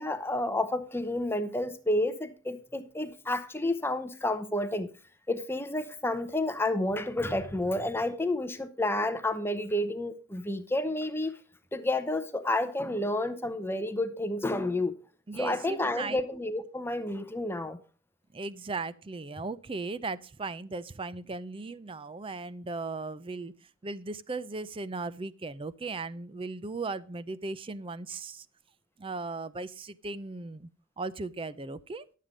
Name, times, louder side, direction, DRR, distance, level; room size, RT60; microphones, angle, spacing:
voice 1, 0.0-4.9 5.3-11.3 11.7-15.0 15.3-17.8, left 1 dB, 10° left, 0.7 m, -30 dB
voice 2, 15.3-16.2 18.3-23.5 23.8-28.5 29.0-30.7 31.0-32.0, right 3 dB, 25° right, 0.4 m, -37 dB
11.0 x 7.5 x 5.0 m
head